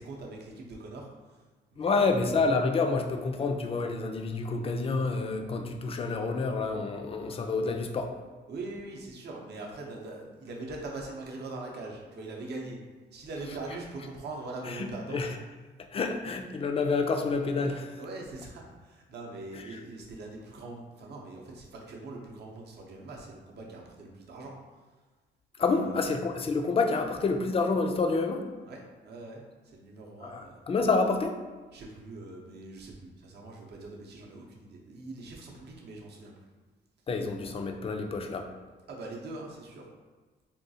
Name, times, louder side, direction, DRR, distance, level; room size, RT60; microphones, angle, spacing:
voice 1, 0.0-1.4 1.7-2.2 8.5-12.8 13.1-15.2 18.0-24.5 25.6-26.1 28.7-30.6 31.7-36.3 38.9-39.9, right 2 dB, 55° right, -1 dB, 0.7 m, -42 dB
voice 2, 1.8-8.1 14.7-14.9 15.1-15.3 15.9-18.0 19.5-19.8 25.6-28.4 30.2-31.4 37.1-38.5, left 4 dB, 30° left, 4 dB, 0.4 m, -28 dB
3.7 x 2.3 x 2.7 m, 1.3 s
cardioid pair, 90°, 20 cm